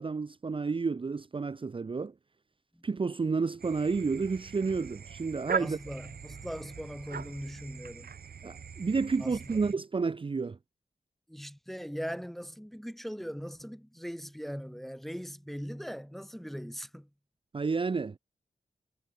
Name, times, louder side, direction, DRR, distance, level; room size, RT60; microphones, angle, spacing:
voice 1, 0.0-2.1 2.8-5.8 8.4-10.6 17.5-18.2, right 4 dB, 35° right, 0.6 m, -30 dB
sound 1, 3.6-9.7, right 7 dB, 90° right, 2.7 m, -40 dB
voice 2, 5.6-8.1 9.2-9.6 11.3-17.1, equal, ahead, 0.9 m, -40 dB
wide cardioid pair, 85°, 15 cm